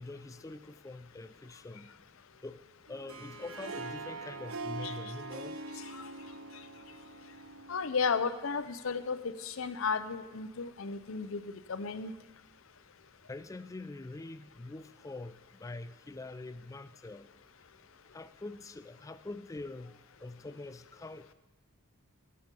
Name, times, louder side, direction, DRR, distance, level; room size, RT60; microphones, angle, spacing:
voice 1, 0.0-1.9 2.4-2.6 2.9-5.6 13.3-17.3 18.1-21.3, left 2 dB, 15° left, 11 dB, 0.3 m, -44 dB
Harp, 2.9-8.1, right 3 dB, 70° right, 0.7 m, -43 dB
voice 2, 7.7-11.4 11.7-12.1, left 5 dB, 70° left, 12 dB, 0.6 m, -33 dB
15.5 x 7.8 x 5.3 m, 1.1 s
head